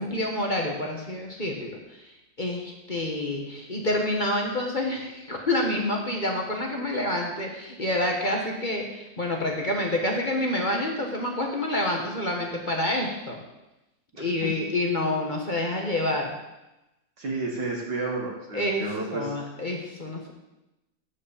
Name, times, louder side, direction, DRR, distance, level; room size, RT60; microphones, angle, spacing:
voice 1, 0.0-1.8 2.4-13.4 14.2-16.3 18.5-18.9 19.1-20.3, left 1 dB, 30° left, 0 dB, 1.1 m, -28 dB
voice 2, 17.2-19.3, right 3 dB, 65° right, -2 dB, 2.3 m, -31 dB
9.5 x 5.4 x 6.9 m, 0.96 s
omnidirectional pair, 2.0 m